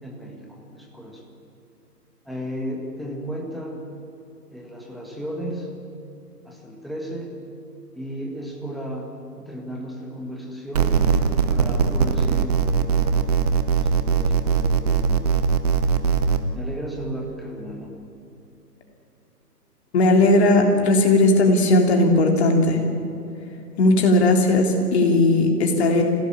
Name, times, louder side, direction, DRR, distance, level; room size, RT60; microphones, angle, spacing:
voice 1, 0.0-1.2 2.2-3.9 4.5-5.7 6.4-7.4 7.9-9.1 9.4-10.9 11.5-13.4 13.7-15.3 16.5-17.9, equal, ahead, -1 dB, 1.6 m, -34 dB
sound 1, 10.7-16.4, right 6 dB, 25° right, 0.8 m, -20 dB
voice 2, 19.9-22.8 23.8-26.0, left 2 dB, 40° left, 2 dB, 3.6 m, -17 dB
26.0 x 17.0 x 8.8 m, 2.8 s
figure-of-eight pair, 140°, 49 cm